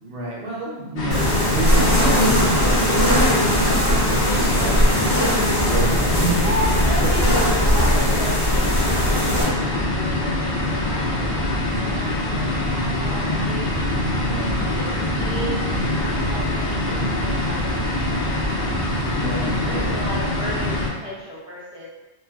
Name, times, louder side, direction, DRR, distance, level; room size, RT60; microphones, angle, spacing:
voice 1, 0.0-3.8 4.1-6.6 7.0-7.1 12.7-13.0 14.2-14.6 19.2-19.9, right 2 dB, 65° right, -4 dB, 0.8 m, -30 dB
sound 1, 1.0-20.9, left 1 dB, 55° left, 0.6 m, -24 dB
sound 2, 1.1-9.4, equal, 20° left, 1.1 m, -20 dB
voice 2, 6.4-13.7 14.6-15.6 16.0-18.8 19.6-21.9, equal, 5° right, -8 dB, 0.6 m, -34 dB
2.3 x 2.2 x 3.3 m, 1.1 s
omnidirectional pair, 1.1 m